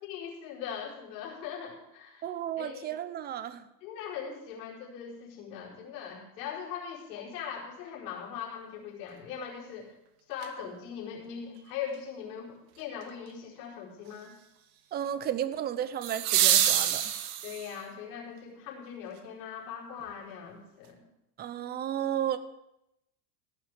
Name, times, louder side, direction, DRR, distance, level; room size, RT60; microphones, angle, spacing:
voice 1, 0.0-2.3 2.6-2.9 3.8-9.9 10.3-14.3 17.4-21.0, left 7 dB, 85° left, -3 dB, 4.6 m, -40 dB
voice 2, 2.2-3.7 14.9-17.0 21.4-22.4, right 10 dB, 20° right, 14 dB, 0.5 m, -33 dB
sound 1, 10.4-10.5 16.0-17.8 20.0-20.1, right 11 dB, 55° right, 1.4 m, -26 dB
16.5 x 6.1 x 7.6 m, 0.88 s
supercardioid pair, 145°, 49 cm